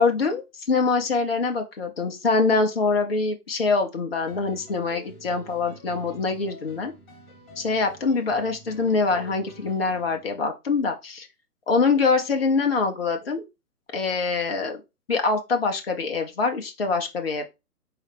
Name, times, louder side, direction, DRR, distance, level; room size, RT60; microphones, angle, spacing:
voice 1, 0.0-6.9 7.6-11.3 11.7-13.4 13.9-14.8 15.1-17.5, left 4 dB, 40° left, 0.7 m, -24 dB
sound 1, 4.2-10.3, equal, 15° left, 1.4 m, -47 dB
4.7 x 3.3 x 3.4 m
figure-of-eight pair, 135°, 47 cm